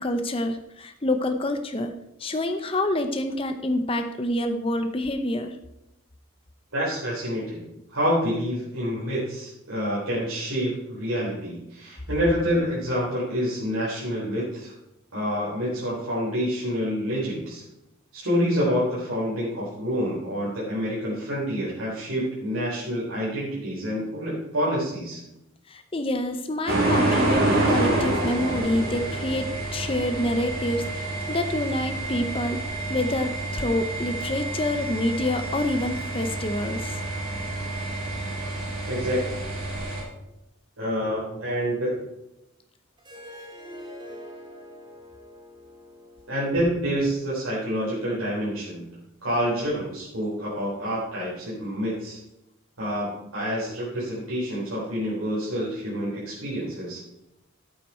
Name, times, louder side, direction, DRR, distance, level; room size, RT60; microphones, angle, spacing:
voice 1, 0.0-1.9 2.2-5.6 25.7-37.0, left 1 dB, 25° left, 7 dB, 0.7 m, -27 dB
voice 2, 6.7-14.7 15.1-17.6 18.1-25.2 38.9-39.4 40.8-42.0 46.3-48.9 49.2-52.2 52.8-57.0, equal, 85° right, -8 dB, 4.1 m, -27 dB
sound 1, 26.7-40.0, right 2 dB, 45° right, 3.5 m, -28 dB
Harp, 43.0-48.1, equal, 20° right, 2.1 m, -45 dB
12.5 x 8.6 x 4.4 m, 0.88 s
head